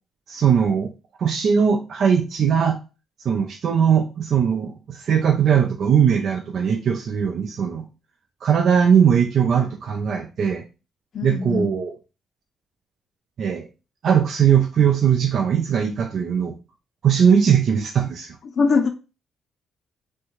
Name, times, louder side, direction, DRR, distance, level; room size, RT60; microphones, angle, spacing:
voice 1, 0.3-0.9 1.2-2.8 3.2-7.9 8.4-10.6 11.2-11.9 13.4-13.7 14.0-16.6 17.0-18.4, right 7 dB, 60° right, 0.4 m, -19 dB
voice 2, 11.1-11.8 18.4-18.9, left 4 dB, 55° left, 0.4 m, -22 dB
3.3 x 2.1 x 3.0 m
cardioid pair, 90°, 0 cm